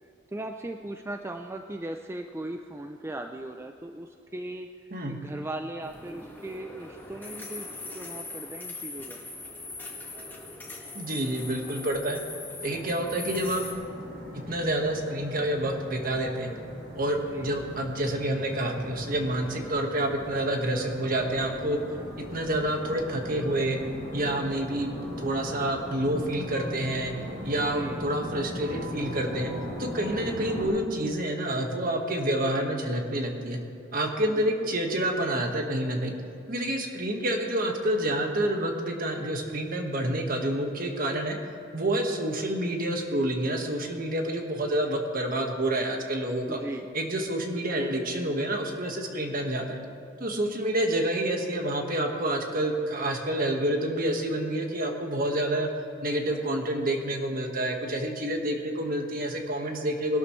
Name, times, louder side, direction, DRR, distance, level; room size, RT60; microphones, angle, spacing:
voice 1, 0.3-4.7 5.1-7.7 7.9-9.2 17.2-17.5 27.6-28.0 34.2-34.5 46.5-46.9, right 1 dB, 15° right, 5 dB, 0.4 m, -38 dB
sound 1, 5.8-13.7, left 3 dB, 10° left, 1.8 m, -41 dB
voice 2, 10.9-12.2 12.6-13.6 14.3-16.5 16.9-21.8 22.2-23.8 24.1-24.9 25.2-27.1 27.4-29.5 29.8-33.6 33.9-36.1 36.5-41.4 41.7-46.6 46.9-49.8 50.2-55.7 56.0-60.2, right 1 dB, 50° right, 3 dB, 1.6 m, -28 dB
sound 2, 12.6-30.7, equal, 70° right, 4.0 m, -39 dB
21.0 x 12.0 x 3.2 m, 2.5 s
head